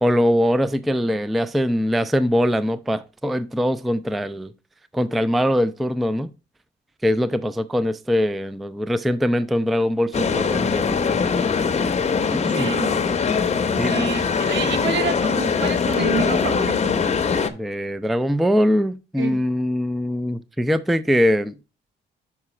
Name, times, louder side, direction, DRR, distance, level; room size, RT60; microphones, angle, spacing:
voice 1, 0.0-4.5 4.9-6.3 7.0-11.2 12.3-12.7 13.8-13.9 17.5-21.5, equal, ahead, 0.3 m, -22 dB
sound 1, 10.1-17.5, left 5 dB, 35° left, 0.7 m, -22 dB
voice 2, 12.5-12.9 13.8-17.0 19.2-19.4, right 6 dB, 65° right, 1.1 m, -28 dB
5.9 x 4.7 x 4.2 m
cardioid pair, 90°, 20 cm